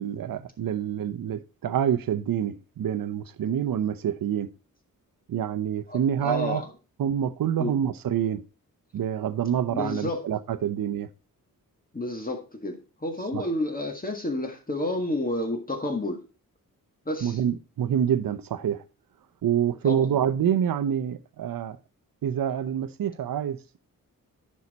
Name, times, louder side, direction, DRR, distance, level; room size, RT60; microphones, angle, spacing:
voice 1, 0.0-4.5 5.3-6.6 7.0-8.4 8.9-11.1 13.3-13.4 17.2-18.8 19.4-21.8 22.2-23.8, right 9 dB, 75° right, 0.8 m, -27 dB
voice 2, 5.9-6.7 7.6-7.7 9.7-10.2 11.9-16.2 17.1-17.4 19.8-20.1, left 1 dB, 25° left, 1.7 m, -30 dB
9.6 x 5.6 x 4.1 m
cardioid pair, 80°, 35 cm